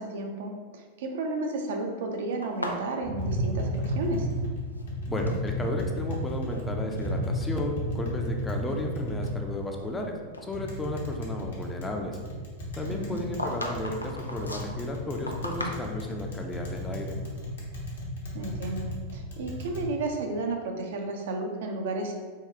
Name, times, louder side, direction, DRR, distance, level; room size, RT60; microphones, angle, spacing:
voice 1, 0.0-4.3 12.9-13.3 18.3-22.1, right 2 dB, 55° right, 2 dB, 0.4 m, -33 dB
sound 1, 2.4-4.4 4.7-5.4 6.1-6.6 7.0-7.2 7.8-7.9 8.5-10.0 10.3-10.5 12.8-16.2, left 1 dB, 85° left, 0.4 m, -38 dB
Tap, 3.0-19.8, equal, 65° left, 0.8 m, -33 dB
voice 2, 5.1-12.2 12.8-17.1, left 2 dB, 10° left, 2 dB, 0.4 m, -33 dB
3.6 x 2.3 x 3.3 m, 1.5 s
figure-of-eight pair, 90°, 0 cm